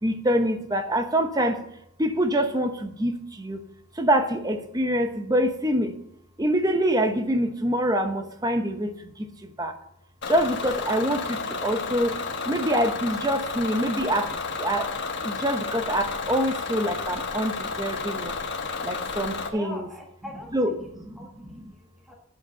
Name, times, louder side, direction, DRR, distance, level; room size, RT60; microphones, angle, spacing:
voice 1, 0.0-1.6 2.0-3.6 4.0-5.9 6.4-9.7 10.3-12.2 12.4-14.3 14.6-14.9 15.2-18.3 18.8-19.9 20.5-21.1 21.5-21.6, right 1 dB, 15° right, 7 dB, 0.9 m, -25 dB
Bus / Engine, 10.2-19.5, left 4 dB, 55° left, 1.3 m, -31 dB
voice 2, 19.5-20.8 21.2-22.1, left 1 dB, ahead, -1 dB, 1.6 m, -42 dB
8.2 x 7.8 x 6.5 m, 0.77 s
head